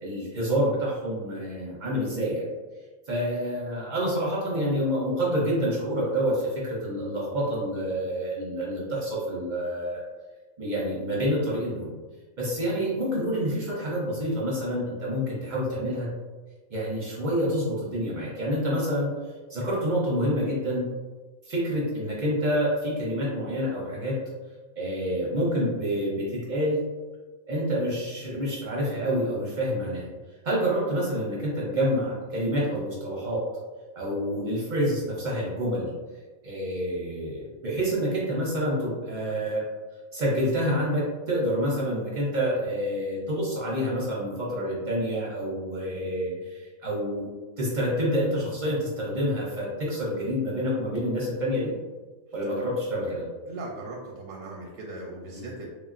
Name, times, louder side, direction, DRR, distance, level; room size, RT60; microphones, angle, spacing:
voice 1, 0.0-2.4 3.1-10.0 10.6-11.9 12.4-16.1 16.7-19.1 19.5-20.8 21.5-24.2 24.8-26.8 27.5-30.1 30.4-33.5 33.9-35.9 36.4-39.6 40.1-47.3 47.6-51.7 52.3-53.2 55.3-55.5, equal, 50° right, -5 dB, 0.6 m, -28 dB
voice 2, 53.5-55.7, right 2 dB, 85° right, -2 dB, 1.0 m, -38 dB
3.2 x 2.3 x 2.4 m, 1.3 s
omnidirectional pair, 1.3 m